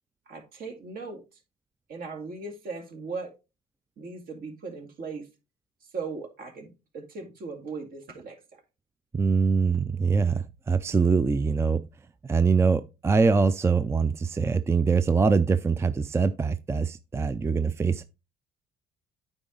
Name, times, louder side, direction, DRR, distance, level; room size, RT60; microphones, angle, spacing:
voice 1, 0.3-1.2 1.9-3.3 4.0-5.3 5.8-8.4, right 4 dB, 60° right, 2.4 m, -38 dB
voice 2, 9.1-11.8 12.3-18.0, right 5 dB, 15° right, 0.4 m, -23 dB
8.9 x 4.8 x 3.8 m
cardioid pair, 110°, 17 cm